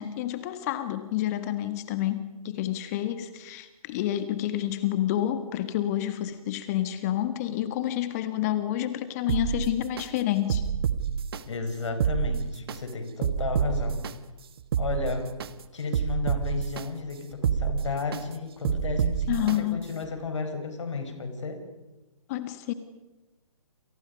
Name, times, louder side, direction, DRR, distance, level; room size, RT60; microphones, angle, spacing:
voice 1, 0.0-10.6 19.3-19.8 22.3-22.7, left 12 dB, 25° left, 11 dB, 1.7 m, -29 dB
sound 1, 9.3-10.1 10.5-11.4 11.9-12.8 13.2-14.1 14.6-15.5 15.9-16.8 17.3-18.2 18.6-19.6 20.0-20.1, right 8 dB, 40° right, 1.4 m, -27 dB
voice 2, 11.5-14.0 14.8-15.3 15.7-21.6, left 4 dB, 55° left, 7 dB, 5.3 m, -33 dB
29.0 x 28.5 x 5.4 m, 1.1 s
figure-of-eight pair, 135°, 18 cm